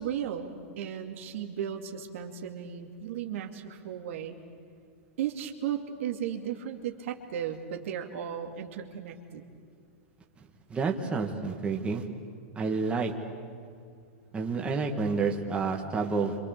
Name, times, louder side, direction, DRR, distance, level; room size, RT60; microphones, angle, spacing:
voice 1, 0.0-4.4 5.2-9.5, right 9 dB, 70° right, 3 dB, 2.6 m, -35 dB
voice 2, 10.7-12.0 12.6-13.1 14.3-16.4, right 4 dB, 15° right, 1 dB, 2.1 m, -29 dB
30.0 x 26.0 x 6.9 m, 2.2 s
supercardioid pair, 145°, 7 cm